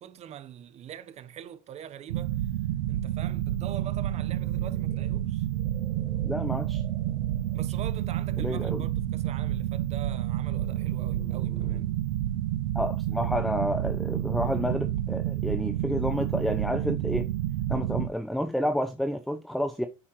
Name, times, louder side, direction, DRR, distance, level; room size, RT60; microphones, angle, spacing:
voice 1, 0.0-2.5 2.9-5.5 7.5-11.9, right 10 dB, 40° right, 1.0 m, -43 dB
sound 1, 2.1-18.1, right 13 dB, 85° right, 0.7 m, -29 dB
sound 2, 4.1-7.8 8.4-8.7 10.4-12.0 13.6-15.1, right 3 dB, 15° right, 1.2 m, -51 dB
voice 2, 6.2-6.8 8.4-8.8 12.7-17.3 17.7-19.9, equal, ahead, 0.8 m, -30 dB
8.9 x 8.5 x 3.1 m
supercardioid pair, 100°, 17 cm